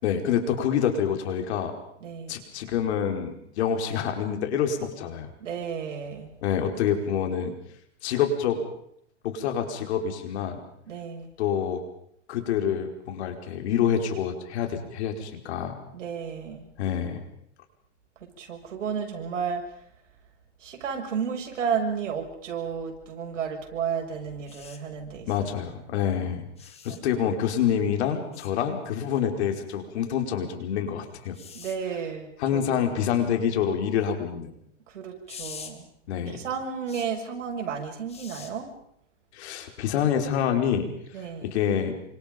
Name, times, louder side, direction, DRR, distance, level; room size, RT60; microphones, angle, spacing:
voice 1, 0.0-1.7 2.3-5.3 6.4-7.5 8.0-8.6 9.2-10.6 11.4-11.8 12.3-15.8 16.8-17.2 25.3-26.4 26.8-31.4 32.4-34.5 36.1-36.4 39.3-40.9 41.4-41.9, left 8 dB, 60° left, 5 dB, 4.9 m, -27 dB
voice 2, 2.0-2.4 5.4-6.3 10.9-11.3 15.9-16.7 18.2-19.8 20.6-25.5 26.9-27.2 31.5-32.9 34.9-35.9 36.3-38.7 41.1-41.5, right 6 dB, 85° right, 2 dB, 7.0 m, -33 dB
sound 1, 24.5-24.8 26.6-27.0 28.3-28.5 31.3-31.8 35.3-35.7 36.9-37.1 38.1-38.5 40.0-40.2, left 7 dB, 15° left, 2.4 m, -43 dB
28.5 x 26.0 x 5.3 m, 0.71 s
supercardioid pair, 145°, 36 cm